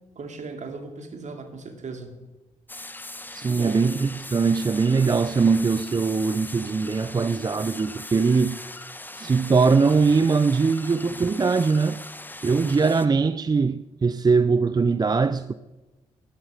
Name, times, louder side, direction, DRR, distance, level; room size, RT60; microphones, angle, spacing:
voice 1, 0.2-2.2 3.4-3.9, right 4 dB, 50° right, 2.6 m, -37 dB
sound 1, 2.7-13.1, left 2 dB, 10° left, 1.1 m, -40 dB
voice 2, 3.3-8.9 9.2-12.0 12.4-15.5, right 4 dB, 25° right, 0.5 m, -21 dB
12.5 x 11.0 x 6.5 m
hypercardioid pair, 45°, 16 cm